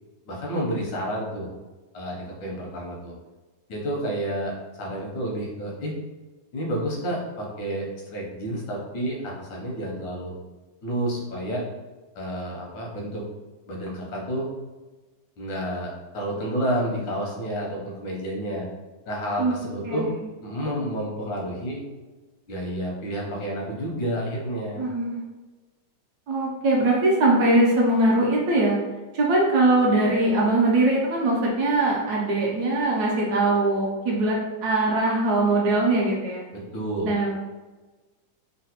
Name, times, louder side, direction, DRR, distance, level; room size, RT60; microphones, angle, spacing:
voice 1, 0.3-1.5 1.9-3.1 3.7-6.0 6.5-10.3 10.8-11.6 12.1-13.2 13.7-14.5 15.4-18.7 19.1-20.1 20.4-21.8 22.5-24.8 36.5-37.1, right 1 dB, 90° left, -2 dB, 1.6 m, -30 dB
voice 2, 19.8-20.2 24.8-25.2 26.3-28.8 29.1-36.4 37.0-37.4, right 2 dB, 70° right, -2 dB, 1.0 m, -21 dB
3.9 x 2.1 x 2.8 m, 1.2 s
omnidirectional pair, 2.0 m